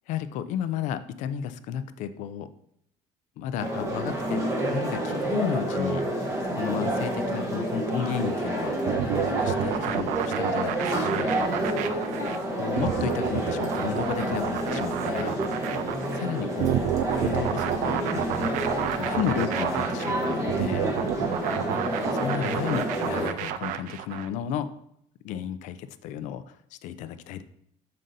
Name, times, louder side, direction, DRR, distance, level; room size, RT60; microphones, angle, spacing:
voice 1, 0.1-2.5 3.4-6.1 6.6-11.3 12.6-15.4 16.1-16.8 17.2-18.6 18.9-20.9 21.7-21.8 22.1-24.7 25.2-27.4, left 9 dB, 70° left, 12 dB, 0.5 m, -33 dB
sound 1, 3.6-23.3, right 1 dB, 25° right, 1.1 m, -29 dB
sound 2, 8.9-24.3, right 11 dB, 80° right, 0.4 m, -30 dB
7.4 x 6.5 x 2.7 m, 0.71 s
cardioid pair, 160°, 13 cm